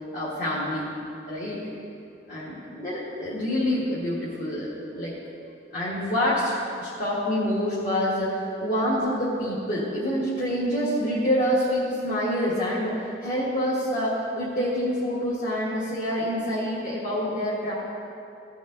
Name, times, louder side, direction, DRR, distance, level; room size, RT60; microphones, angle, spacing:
voice 1, 0.1-0.9 1.3-1.6 2.3-5.1 5.7-17.7, equal, 50° left, -9 dB, 1.6 m, -27 dB
15.5 x 5.4 x 3.8 m, 2.7 s
head